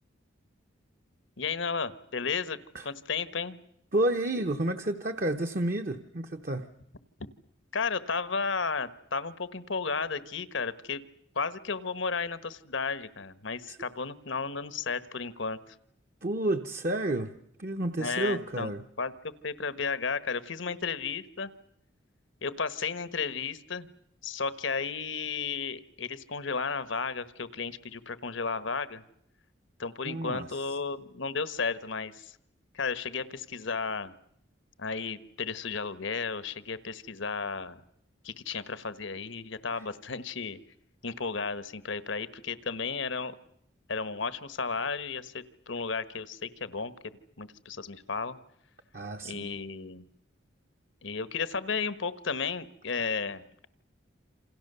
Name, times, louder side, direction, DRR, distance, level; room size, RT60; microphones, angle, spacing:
voice 1, 1.4-2.6 2.8-3.6 7.7-11.0 11.3-15.6 18.0-18.7 19.0-19.1 19.4-21.5 22.4-23.9 24.2-29.0 29.8-32.3 32.7-34.1 34.8-37.8 38.2-40.6 41.0-43.3 43.9-46.9 47.4-48.4 49.2-50.1 51.0-53.4, left 5 dB, 75° left, 14 dB, 1.2 m, -33 dB
voice 2, 3.9-6.7 13.7-13.8 16.2-17.3 17.6-18.8 30.0-30.5 48.9-49.5, right 1 dB, 45° right, 7 dB, 1.0 m, -30 dB
28.0 x 27.0 x 6.8 m, 0.74 s
head